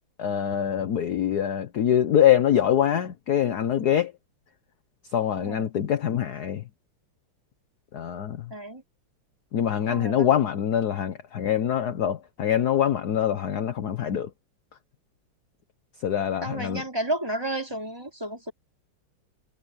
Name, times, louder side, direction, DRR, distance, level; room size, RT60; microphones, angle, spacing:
voice 1, 0.2-4.1 5.1-6.6 7.9-8.5 9.5-14.3 16.0-16.8, left 10 dB, 55° left, 1.4 m, -24 dB
voice 2, 5.4-5.7 8.5-8.8 9.9-10.3 16.4-18.5, right 1 dB, 10° right, 5.0 m, -32 dB
omnidirectional pair, 2.4 m